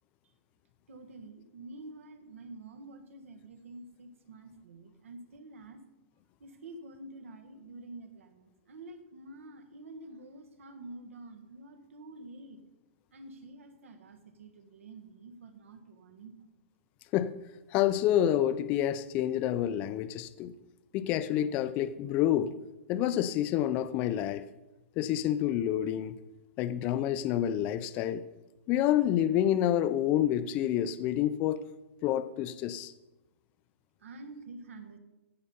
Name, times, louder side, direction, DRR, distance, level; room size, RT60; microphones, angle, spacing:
voice 1, 0.9-5.8 6.4-12.6 13.1-16.4 34.0-35.0, right 2 dB, 90° right, 7 dB, 1.5 m, -48 dB
voice 2, 17.7-20.5 20.9-22.5 22.9-24.4 25.0-26.2 26.6-28.2 28.7-31.6 32.0-32.9, left 11 dB, 20° left, 13 dB, 0.3 m, -28 dB
15.0 x 5.6 x 5.4 m, 1.0 s
hypercardioid pair, 170°, 7 cm